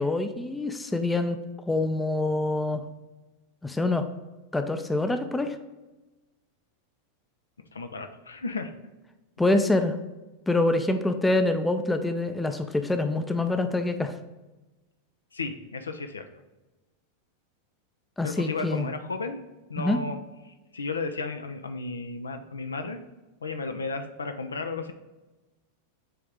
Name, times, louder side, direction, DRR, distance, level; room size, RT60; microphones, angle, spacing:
voice 1, 0.0-1.4 1.7-2.8 3.6-4.1 4.5-5.6 9.4-10.0 10.5-14.2 18.2-18.9 19.8-20.0, left 2 dB, 5° left, 8 dB, 0.5 m, -25 dB
voice 2, 7.7-8.7 15.3-16.2 18.2-19.4 19.7-20.2 20.5-23.0 23.4-24.9, left 3 dB, 75° left, 8 dB, 0.5 m, -34 dB
7.7 x 3.5 x 3.6 m, 1.1 s
figure-of-eight pair, 90°, 0 cm